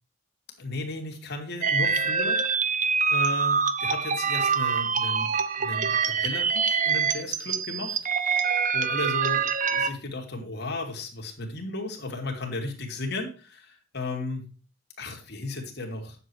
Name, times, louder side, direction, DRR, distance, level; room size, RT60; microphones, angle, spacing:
voice 1, 0.6-2.4 3.1-8.0 8.7-14.4 15.0-16.2, left 2 dB, 55° left, 1 dB, 2.9 m, -35 dB
sound 1, 1.6-9.9, right 6 dB, 40° right, 0.8 m, -25 dB
10.0 x 7.5 x 4.7 m, 0.37 s
head